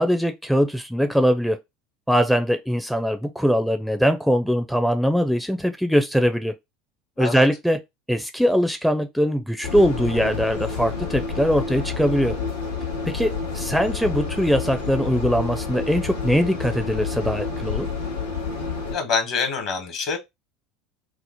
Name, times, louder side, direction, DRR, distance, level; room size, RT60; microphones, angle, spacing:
voice 1, 0.0-1.6 2.1-6.5 7.2-7.8 8.1-12.4 13.0-17.9, equal, ahead, 0.4 m, -21 dB
sound 1, 9.6-18.9, left 5 dB, 85° left, 0.9 m, -29 dB
voice 2, 18.9-20.2, left 5 dB, 55° left, 1.1 m, -25 dB
2.9 x 2.0 x 4.1 m
hypercardioid pair, 75°, 0 cm